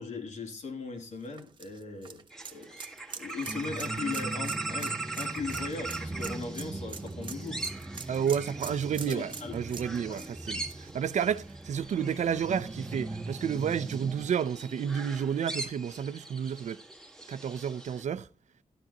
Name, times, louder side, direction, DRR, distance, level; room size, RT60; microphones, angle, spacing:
voice 1, 0.0-2.2 2.5-2.7 3.1-7.6 9.1-9.6 10.1-10.2, left 3 dB, 80° left, 3.1 m, -38 dB
sound 1, 1.0-11.8 12.2-12.3 13.7-13.8, right 5 dB, 40° right, 1.2 m, -45 dB
sound 2, 2.3-18.0, right 3 dB, 5° left, 1.8 m, -41 dB
sound 3, 3.4-14.3, right 2 dB, 15° right, 0.8 m, -41 dB
voice 2, 8.1-16.8 17.3-18.3, right 8 dB, 80° right, 0.7 m, -31 dB
13.0 x 12.5 x 3.0 m
wide cardioid pair, 145°, 12 cm